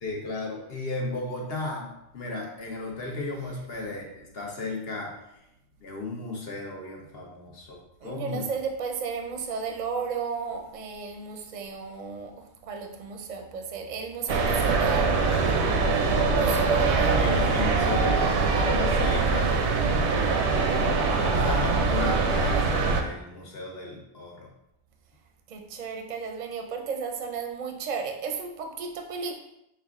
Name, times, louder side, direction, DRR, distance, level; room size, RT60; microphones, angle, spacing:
voice 1, 0.0-5.1 5.8-8.4 15.9-20.9 21.3-24.5, left 2 dB, 65° left, 0 dB, 1.1 m, -35 dB
voice 2, 8.0-12.3 12.6-15.1 16.4-17.2 21.2-21.7 25.5-29.3, right 5 dB, 50° right, 3 dB, 0.6 m, -34 dB
sound 1, 14.3-23.0, right 4 dB, 85° right, 0.9 m, -23 dB
5.4 x 2.3 x 3.6 m, 0.83 s
omnidirectional pair, 1.1 m